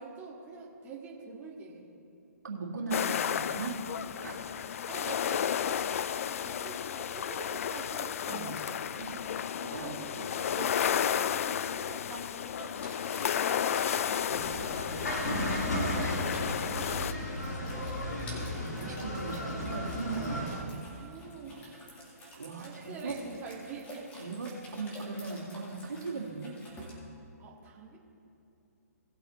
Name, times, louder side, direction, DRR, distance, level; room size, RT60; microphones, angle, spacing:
voice 1, 0.0-1.9 4.9-8.9 9.8-18.9 21.0-21.9 22.6-24.1 27.4-28.0, right 4 dB, 20° right, -5 dB, 2.0 m, -47 dB
voice 2, 2.4-3.8 4.2-4.5 8.3-8.5 9.0-9.2 9.6-9.9 18.8-20.7 22.4-23.2 24.2-26.5, right 3 dB, 85° right, -1 dB, 1.9 m, -38 dB
sound 1, 2.9-17.1, left 9 dB, 55° left, 0.3 m, -32 dB
sound 2, 12.6-26.9, equal, 15° left, 2.4 m, -50 dB
sound 3, 14.3-20.6, left 1 dB, 80° left, 2.2 m, -34 dB
18.5 x 7.9 x 3.1 m, 2.7 s
hypercardioid pair, 140°, 9 cm